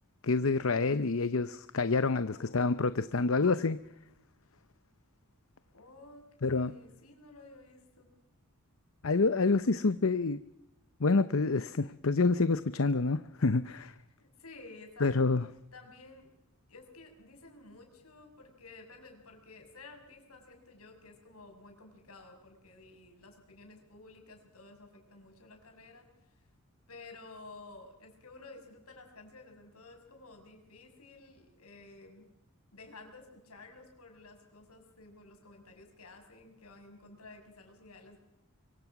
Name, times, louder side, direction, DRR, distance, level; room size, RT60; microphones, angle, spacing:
voice 1, 0.2-3.8 6.4-6.7 9.0-10.4 11.0-13.9 15.0-15.5, left 3 dB, 65° left, 0.8 m, -27 dB
voice 2, 2.2-3.7 5.7-8.1 14.2-15.3 15.7-16.3 16.7-26.1 26.9-32.3 32.7-38.2, left 3 dB, 85° left, 6.5 m, -53 dB
25.0 x 24.5 x 6.0 m
head